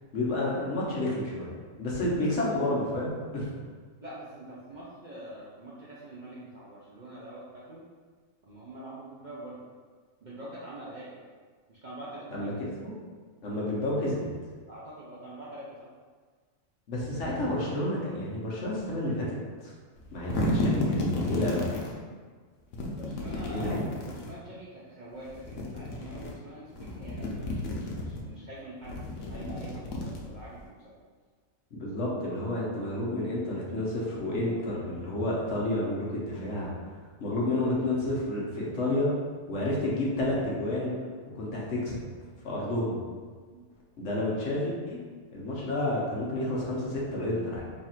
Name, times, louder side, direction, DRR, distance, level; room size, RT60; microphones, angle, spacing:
voice 1, 0.1-3.5 12.3-12.5 12.8-12.9 13.4-14.2 16.9-19.3 19.6-19.7 20.1-21.6 23.5-23.8 31.7-36.7 37.2-39.1 39.4-40.9 41.3-42.0 42.4-43.0 44.0-45.0 45.3-47.6, left 1 dB, 65° left, -5 dB, 1.1 m, -30 dB
voice 2, 4.0-7.8 8.4-9.6 10.2-11.3 11.7-12.5 14.7-15.9 23.0-23.7 24.1-31.0 43.5-43.6, right 1 dB, 50° right, -8 dB, 0.6 m, -45 dB
sound 1, 20.0-21.9 22.7-24.3 25.3-26.3 26.7-28.2 28.8-30.6, left 1 dB, 90° left, 1.1 m, -32 dB
3.2 x 2.5 x 4.3 m, 1.5 s
omnidirectional pair, 1.4 m